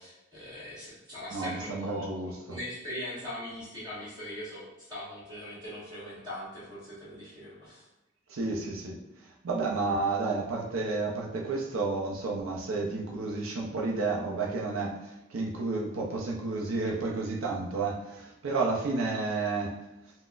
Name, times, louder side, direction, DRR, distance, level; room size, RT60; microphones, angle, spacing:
voice 1, 0.0-7.8, left 1 dB, 20° right, -9 dB, 1.2 m, -41 dB
voice 2, 1.3-2.6 8.3-9.0 9.4-19.8, right 3 dB, 70° right, -1 dB, 0.5 m, -31 dB
3.8 x 2.0 x 2.4 m, 0.95 s
head